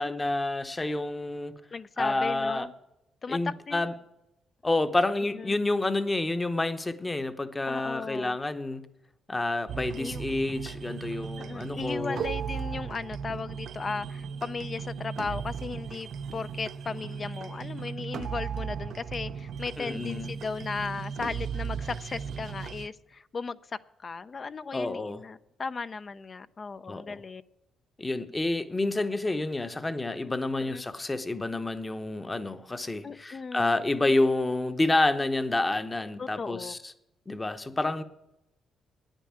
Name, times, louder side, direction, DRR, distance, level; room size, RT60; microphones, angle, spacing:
voice 1, 0.0-1.5 2.0-2.7 3.3-3.9 4.6-8.8 9.3-12.2 19.8-20.3 24.7-25.2 26.9-27.2 28.0-36.8 37.3-38.0, left 2 dB, 20° left, 0.9 m, -29 dB
voice 2, 1.7-2.7 3.2-3.9 5.3-5.6 7.7-8.4 10.0-10.2 11.4-23.6 24.0-27.4 30.5-30.8 33.0-33.8 36.2-36.8, left 4 dB, 40° left, 0.5 m, -36 dB
sound 1, 9.7-22.9, right 7 dB, 65° right, 0.6 m, -36 dB
9.7 x 9.1 x 8.7 m
cardioid pair, 90°, 0 cm